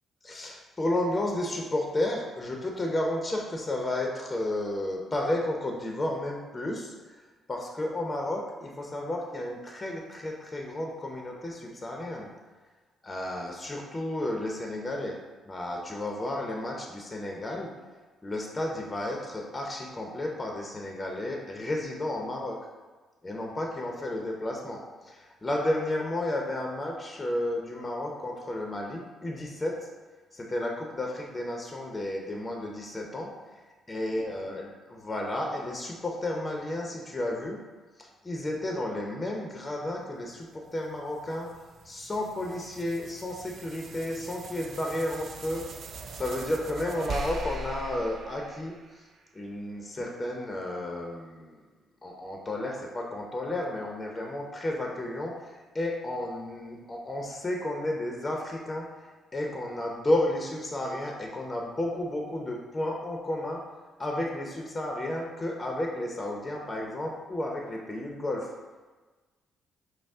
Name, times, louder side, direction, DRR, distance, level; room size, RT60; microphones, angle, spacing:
voice 1, 0.2-7.2 7.5-12.3 13.0-15.2 15.4-17.7 18.2-22.6 23.2-29.8 30.3-33.3 33.9-34.6 35.0-37.6 38.0-41.5 41.8-45.6 46.1-48.8 49.3-51.6 52.0-58.9 59.3-63.6 64.0-68.5, left 1 dB, 20° left, 0 dB, 0.6 m, -32 dB
sound 1, 40.7-49.3, right 3 dB, 55° right, 0.3 m, -41 dB
5.1 x 2.0 x 3.5 m, 1.3 s
cardioid pair, 90°, 0 cm